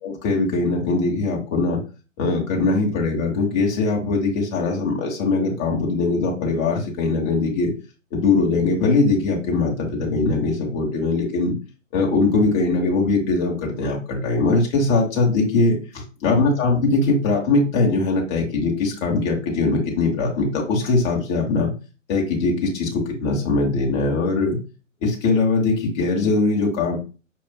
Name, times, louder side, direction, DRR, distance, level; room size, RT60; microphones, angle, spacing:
voice 1, 0.0-1.8 2.2-7.7 8.1-11.5 11.9-15.8 16.2-21.7 22.1-24.6 25.0-27.0, left 3 dB, 20° left, -1 dB, 0.9 m, -21 dB
5.4 x 2.4 x 2.2 m, 0.34 s
figure-of-eight pair, 125°, 39 cm